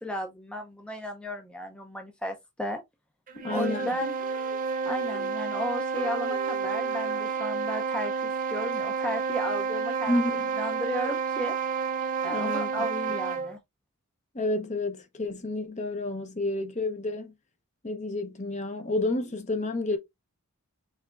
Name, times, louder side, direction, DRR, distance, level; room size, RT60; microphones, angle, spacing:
voice 1, 0.0-2.8 3.5-4.1 4.9-10.1 10.6-11.6 12.2-13.6, equal, 5° left, 0.5 m, -34 dB
sound 1, 3.3-13.6, right 5 dB, 35° right, 0.6 m, -30 dB
voice 2, 3.4-3.9 10.1-10.5 12.2-12.9 14.3-17.3 17.8-20.0, left 2 dB, 30° left, 0.8 m, -30 dB
Female singing, 3.4-5.6 5.9-8.0, right 4 dB, 60° right, 1.0 m, -45 dB
5.7 x 3.5 x 2.4 m
head